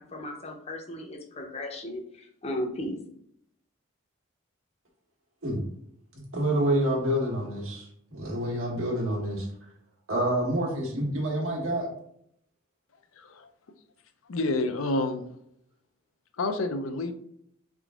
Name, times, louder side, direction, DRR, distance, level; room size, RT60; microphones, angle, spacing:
voice 1, 0.0-3.0, left 1 dB, 30° left, 3 dB, 0.6 m, -36 dB
voice 2, 6.1-9.5 10.1-11.9, right 1 dB, 80° right, -1 dB, 1.4 m, -28 dB
voice 3, 13.2-13.5 14.3-15.2 16.4-17.1, left 2 dB, 80° left, 8 dB, 0.5 m, -28 dB
3.7 x 3.6 x 3.5 m, 0.70 s
head